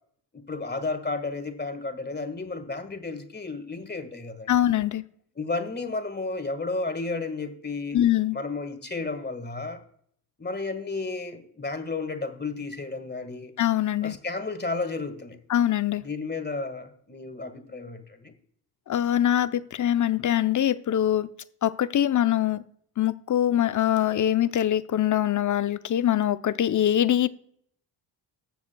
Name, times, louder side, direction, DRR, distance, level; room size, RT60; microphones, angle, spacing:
voice 1, 0.3-4.5 5.4-8.0 8.3-9.8 10.4-13.5 14.0-15.4 16.0-18.3, left 3 dB, 20° left, 1.7 m, -32 dB
voice 2, 4.5-5.0 7.9-8.4 13.6-14.2 15.5-16.0 18.9-21.3 21.6-22.6 23.0-27.3, left 11 dB, 35° left, 0.7 m, -23 dB
19.0 x 7.1 x 2.3 m
supercardioid pair, 55°, 50 cm